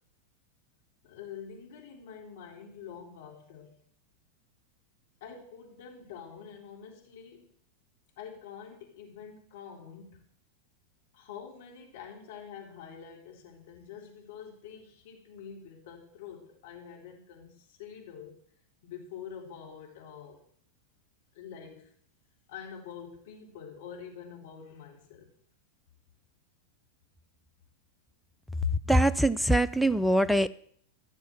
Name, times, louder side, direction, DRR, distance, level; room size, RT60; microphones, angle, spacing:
voice 1, 1.0-3.8 5.2-7.5 8.2-10.2 11.1-18.4 18.8-20.4 21.3-21.9 22.5-25.3 28.6-28.7, left 8 dB, 55° left, 0 dB, 3.7 m, -45 dB
voice 2, 28.9-30.5, right 1 dB, ahead, 16 dB, 0.5 m, -23 dB
15.0 x 6.9 x 7.8 m, 0.62 s
figure-of-eight pair, 90°, 0 cm